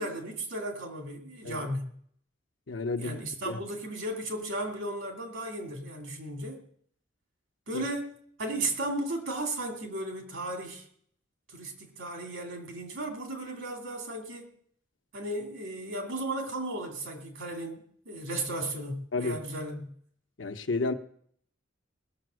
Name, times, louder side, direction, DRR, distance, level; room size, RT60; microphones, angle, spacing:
voice 1, 0.0-1.9 3.0-6.6 7.7-10.8 11.5-14.5 15.1-19.9, right 1 dB, 90° right, 3 dB, 2.6 m, -35 dB
voice 2, 2.7-3.2 3.5-3.6 7.7-7.8 19.1-19.4 20.4-20.9, left 3 dB, 80° left, 7 dB, 0.9 m, -31 dB
19.5 x 6.9 x 6.4 m, 0.63 s
head